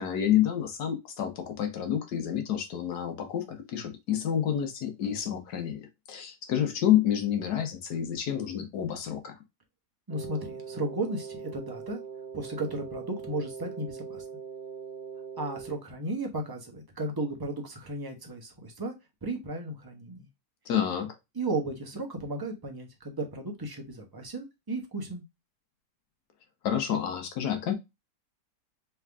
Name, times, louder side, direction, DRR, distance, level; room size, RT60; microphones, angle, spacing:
voice 1, 0.0-9.4 20.6-21.1 26.6-27.7, left 10 dB, 70° left, 1.3 m, -29 dB
voice 2, 10.1-12.0 12.3-14.2 15.4-18.9 19.2-20.3 21.4-25.2, right 2 dB, 20° right, 0.7 m, -34 dB
Wind instrument woodwind instrument, 10.1-15.8, right 6 dB, 70° right, 1.3 m, -41 dB
3.7 x 3.3 x 3.4 m
omnidirectional pair, 1.8 m